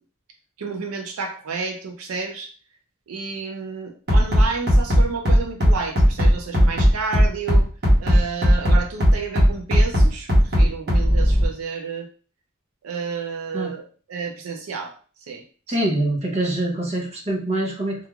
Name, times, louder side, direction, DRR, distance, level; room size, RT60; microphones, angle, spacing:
voice 1, 0.6-2.5 3.1-7.7 8.0-12.1 12.8-13.8 14.1-14.9 15.3-15.9, right 5 dB, 75° right, 3 dB, 0.4 m, -31 dB
Bass drum, 4.1-11.5, equal, 50° right, 1.0 m, -15 dB
voice 2, 15.7-18.1, right 1 dB, 30° right, -1 dB, 0.7 m, -24 dB
3.0 x 2.4 x 2.3 m, 0.40 s
head